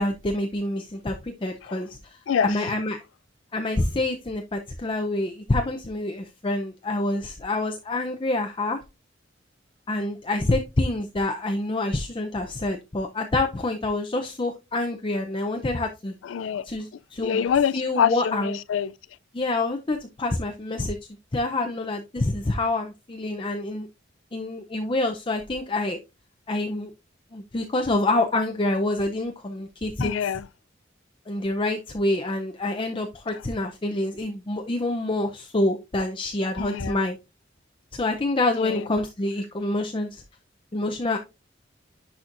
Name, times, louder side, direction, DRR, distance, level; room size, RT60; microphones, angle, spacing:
voice 1, 0.0-3.0 3.5-8.8 9.9-16.1 16.6-18.6 19.3-21.0 21.3-23.9 24.3-26.0 26.5-26.9 27.3-30.1 31.3-37.2 37.9-40.2 40.7-41.2, left 2 dB, 25° left, 0.6 m, -27 dB
voice 2, 16.2-16.7 17.2-18.9 30.0-30.5 36.6-37.0 38.5-38.8, left 8 dB, 85° left, 0.4 m, -25 dB
10.5 x 4.3 x 2.5 m
head